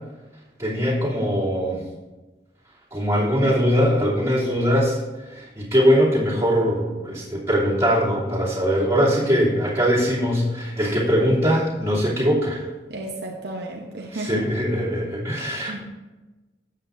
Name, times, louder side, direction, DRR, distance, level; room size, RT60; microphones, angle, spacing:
voice 1, 0.6-1.8 2.9-5.0 5.3-12.6 14.1-15.8, equal, 15° right, -8 dB, 3.1 m, -21 dB
voice 2, 12.9-14.3 15.7-15.8, right 2 dB, 65° right, 0 dB, 1.0 m, -33 dB
12.0 x 8.3 x 2.7 m, 1.2 s
head